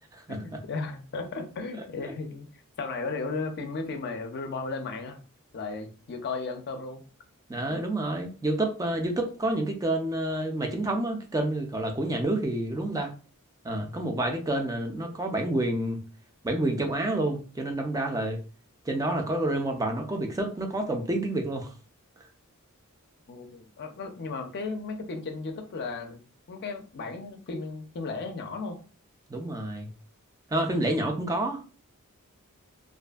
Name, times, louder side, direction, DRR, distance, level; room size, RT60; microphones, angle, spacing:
voice 1, 0.3-2.5 2.8-5.2 5.5-7.0 7.7-7.8 23.3-26.2 26.5-28.8, left 3 dB, 50° left, 6 dB, 0.5 m, -35 dB
voice 2, 7.5-13.1 13.6-16.0 16.4-18.4 18.9-21.7 29.3-29.9 30.5-31.7, right 1 dB, 15° right, 3 dB, 0.4 m, -28 dB
2.5 x 2.4 x 2.3 m, 0.35 s
head